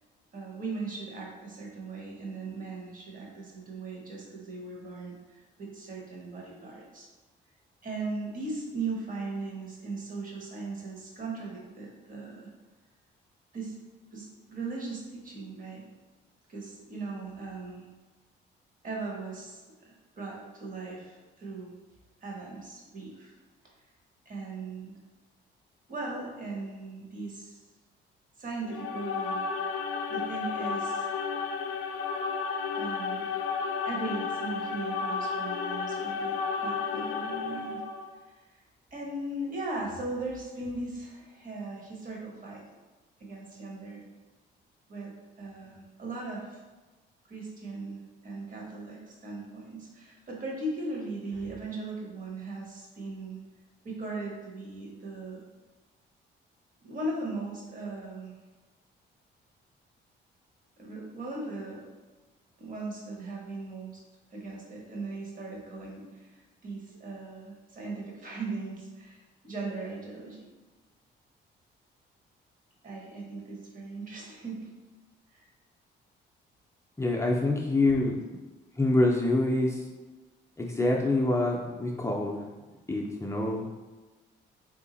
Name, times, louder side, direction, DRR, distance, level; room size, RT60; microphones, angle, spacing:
voice 1, 0.3-7.1 7.8-12.5 13.5-13.7 14.1-15.8 16.5-17.9 18.8-21.7 22.2-23.3 24.2-24.9 25.9-27.6 28.4-29.5 30.1-31.1 32.8-33.3 33.8-36.4 36.6-37.8 38.3-38.6 38.9-42.6 43.2-44.0 44.9-46.6 47.3-53.4 53.8-55.4 56.8-58.3 60.8-61.9 62.6-64.0 64.3-70.5 72.8-74.7 75.3-75.5, right 3 dB, 45° right, -2 dB, 1.3 m, -38 dB
sound 1, 28.6-38.1, left 5 dB, 85° left, 0.4 m, -32 dB
voice 2, 77.0-78.2 78.8-79.8 80.6-82.4 82.9-83.6, left 2 dB, 15° left, -2 dB, 0.5 m, -26 dB
3.6 x 2.8 x 3.9 m, 1.2 s
cardioid pair, 90°, 20 cm